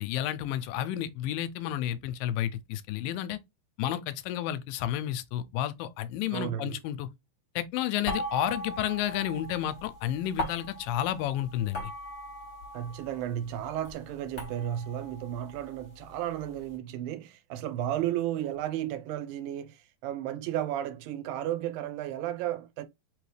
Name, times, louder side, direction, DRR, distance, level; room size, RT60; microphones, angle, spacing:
voice 1, 0.0-3.4 3.8-7.1 7.6-11.9, left 12 dB, 85° left, 2.2 m, -31 dB
voice 2, 6.3-6.8 12.7-22.8, right 12 dB, 85° right, 2.5 m, -33 dB
sound 1, 8.0-13.3 13.6-16.5, equal, 35° left, 2.1 m, -39 dB
5.2 x 3.0 x 3.2 m
omnidirectional pair, 4.0 m